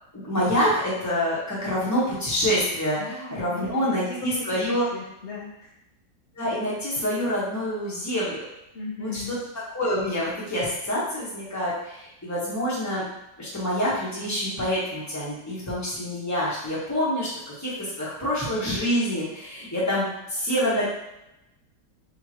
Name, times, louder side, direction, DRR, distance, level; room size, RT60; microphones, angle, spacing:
voice 1, 0.1-4.9 6.4-8.4 9.0-9.4 9.7-13.0 13.4-17.3 17.6-17.7 18.0-20.9, equal, 10° left, -7 dB, 1.0 m, -26 dB
voice 2, 3.0-5.7 8.7-9.4, left 3 dB, 60° left, -5 dB, 0.7 m, -37 dB
3.8 x 3.5 x 3.0 m, 0.87 s
omnidirectional pair, 1.9 m